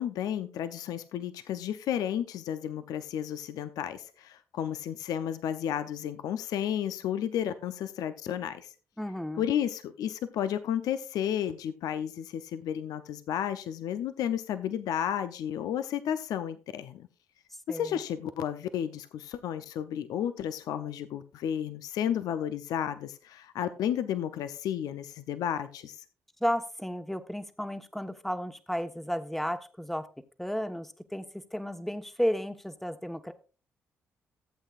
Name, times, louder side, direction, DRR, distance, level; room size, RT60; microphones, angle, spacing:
voice 1, 0.0-8.7 9.4-17.1 17.7-26.0, left 9 dB, 75° left, 11 dB, 0.6 m, -32 dB
voice 2, 9.0-9.5 17.7-18.0 26.4-30.1 30.4-33.3, equal, 5° left, 9 dB, 1.2 m, -33 dB
15.0 x 8.1 x 2.4 m, 0.34 s
hypercardioid pair, 45°, 7 cm